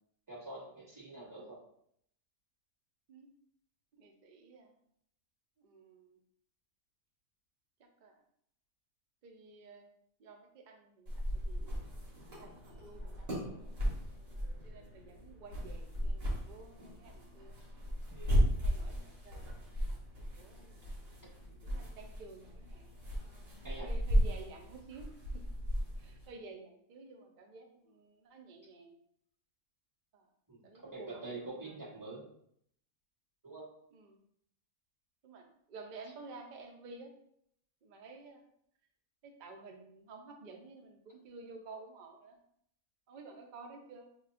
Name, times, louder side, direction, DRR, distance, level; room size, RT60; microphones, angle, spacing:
voice 1, 0.3-1.6 18.1-18.5 23.6-23.9 30.5-32.2 33.4-33.6, right 2 dB, 15° right, -8 dB, 1.2 m, -46 dB
voice 2, 3.9-4.8 5.6-6.2 7.8-8.2 9.2-9.9 10.2-11.8 12.3-13.5 14.6-17.6 18.6-19.6 20.4-20.8 21.6-22.9 23.6-25.4 26.0-28.9 30.1-30.3 30.6-31.8 33.9-34.2 35.2-37.1 37.8-38.4 39.2-42.4 43.1-44.1, right 3 dB, 75° right, 3 dB, 0.4 m, -52 dB
sound 1, 11.1-26.3, equal, 60° right, 1.6 m, -36 dB
5.7 x 2.2 x 2.5 m, 0.69 s
omnidirectional pair, 1.6 m